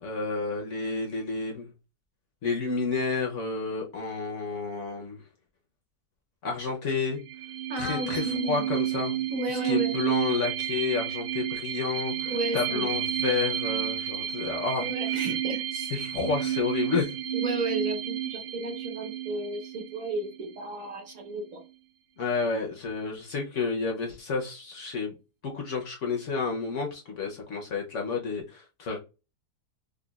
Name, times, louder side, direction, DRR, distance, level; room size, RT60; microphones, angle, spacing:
voice 1, 0.0-1.7 2.4-5.2 6.4-7.2 7.8-9.1 9.5-15.2 15.7-17.1 22.2-25.1 25.4-29.0, left 4 dB, 60° left, 1 dB, 0.9 m, -30 dB
sound 1, 7.2-20.6, right 11 dB, 85° right, 0.5 m, -31 dB
voice 2, 7.7-8.7 9.3-10.0 12.3-12.9 14.8-15.6 15.9-16.1 17.3-21.6, right 1 dB, 60° right, 3 dB, 1.3 m, -33 dB
4.9 x 2.2 x 2.3 m, 0.29 s
omnidirectional pair, 1.7 m